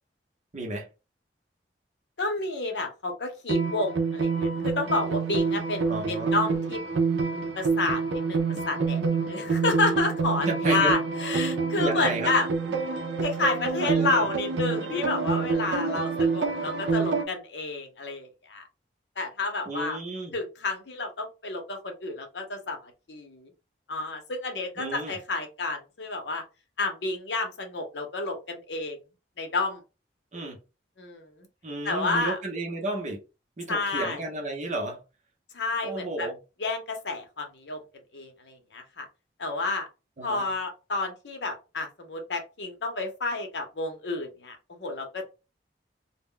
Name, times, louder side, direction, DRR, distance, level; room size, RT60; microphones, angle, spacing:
voice 1, 0.5-0.9 5.9-6.3 10.5-11.0 11.8-12.3 13.8-14.2 19.7-20.3 24.8-25.1 30.3-30.6 31.6-33.2 33.6-35.0 35.8-36.4 40.2-40.5, right 2 dB, 40° right, 0.7 m, -32 dB
voice 2, 2.2-6.8 7.6-12.5 13.2-18.6 19.2-20.0 20.3-23.5 23.9-26.4 26.8-29.0 29.4-29.8 31.0-31.3 31.8-32.4 33.7-34.2 35.5-36.3 36.6-37.8 38.1-39.1 39.4-39.9 40.2-45.2, left 3 dB, 75° left, 0.8 m, -30 dB
sound 1, 3.5-17.2, right 4 dB, 85° right, 0.5 m, -27 dB
2.2 x 2.1 x 3.7 m
head